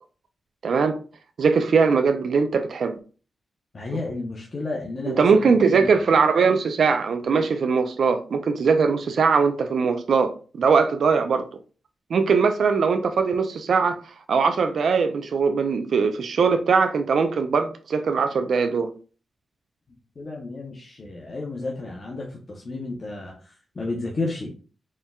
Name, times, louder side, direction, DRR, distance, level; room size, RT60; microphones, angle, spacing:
voice 1, 0.6-1.0 1.4-3.0 5.1-11.5 12.1-14.0 14.3-18.9, right 5 dB, 65° right, 0.4 m, -21 dB
voice 2, 3.7-5.9 20.2-24.5, left 3 dB, 35° left, 0.7 m, -32 dB
4.3 x 3.5 x 2.3 m
wide cardioid pair, 140°, 0 cm